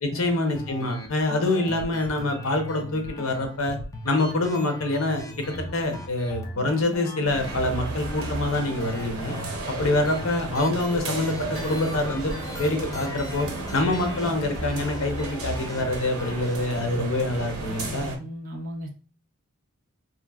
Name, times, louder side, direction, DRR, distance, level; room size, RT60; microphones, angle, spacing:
voice 1, 0.0-3.8 4.0-9.4 9.8-18.1, left 2 dB, 65° left, 4 dB, 0.7 m, -26 dB
sound 1, 0.6-16.5, equal, 15° left, 0.3 m, -38 dB
sound 2, 7.3-18.2, right 2 dB, 75° right, 0.8 m, -34 dB
voice 2, 18.2-18.9, equal, 40° right, 1 dB, 0.7 m, -36 dB
2.9 x 2.5 x 2.3 m, 0.37 s
head